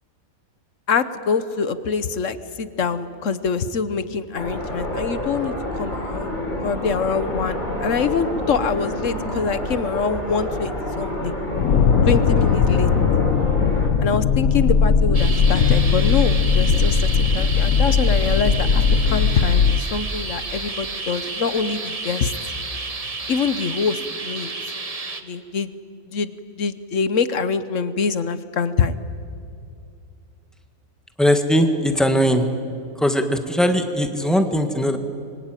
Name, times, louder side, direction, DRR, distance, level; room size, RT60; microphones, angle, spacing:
voice 1, 0.9-6.3 6.6-11.4 12.1-12.9 14.0-22.3 23.3-24.5 25.2-25.7 26.1-29.0, left 5 dB, 65° left, 13 dB, 1.4 m, -24 dB
sound 1, 4.4-13.9, left 1 dB, 35° left, 4.4 m, -28 dB
sound 2, 11.5-19.8, left 6 dB, 80° left, 1.4 m, -18 dB
sound 3, 15.1-25.2, right 3 dB, 30° right, 1.2 m, -31 dB
voice 2, 31.2-32.5 33.0-35.0, equal, ahead, 6 dB, 1.6 m, -19 dB
25.5 x 23.5 x 9.1 m, 2.5 s
omnidirectional pair, 1.4 m